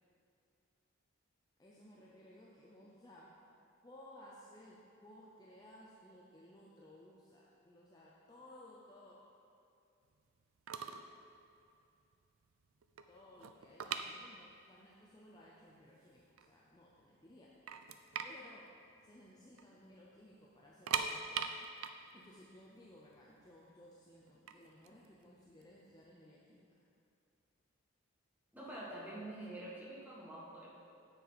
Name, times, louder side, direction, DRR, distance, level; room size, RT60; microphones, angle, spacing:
voice 1, 1.6-3.4 3.8-9.2 13.0-17.6 18.2-18.8 19.0-21.4 22.1-26.9, left 1 dB, 20° left, -5 dB, 0.6 m, -59 dB
sound 1, 10.4-10.5 10.7-11.1 11.4-11.6 12.1-12.2 12.5-14.8 15.0-15.1 15.8-15.9 16.2-17.0 17.3-17.4 17.7-19.7 19.9-20.1 20.6-23.5 24.3-26.0, right 7 dB, 90° right, 0.4 m, -41 dB
voice 2, 28.5-30.7, right 1 dB, 10° right, -6 dB, 1.4 m, -46 dB
7.4 x 7.1 x 4.0 m, 2.5 s
head